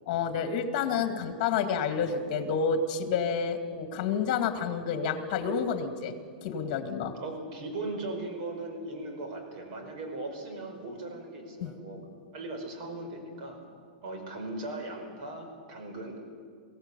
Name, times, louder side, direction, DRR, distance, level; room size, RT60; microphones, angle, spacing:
voice 1, 0.1-6.1 6.4-7.1 11.6-11.7, left 6 dB, 45° left, 8 dB, 2.3 m, -29 dB
voice 2, 7.2-12.0 12.3-13.6 14.0-16.2, right 2 dB, 50° right, 4 dB, 5.1 m, -38 dB
22.0 x 16.5 x 8.4 m, 2.1 s
supercardioid pair, 155°, 5 cm